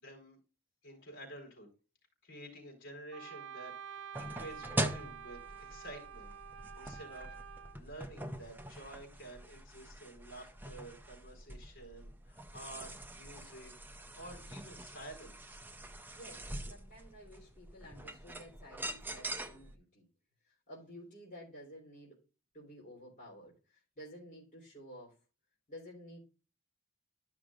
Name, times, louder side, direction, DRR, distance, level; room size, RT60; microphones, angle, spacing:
voice 1, 0.0-0.4 0.8-1.7 2.2-6.3 6.7-7.4 7.7-13.7 14.1-15.6, right 1 dB, 60° left, 1 dB, 4.3 m, -50 dB
Wind instrument woodwind instrument, 3.1-7.8, right 8 dB, 60° right, 0.7 m, -48 dB
sound 1, 4.1-19.7, right 1 dB, 10° right, 0.6 m, -43 dB
voice 2, 16.1-20.1 20.5-22.2 22.5-25.2 25.7-26.2, equal, 40° left, -5 dB, 3.5 m, -52 dB
13.0 x 6.0 x 2.5 m, 0.31 s
head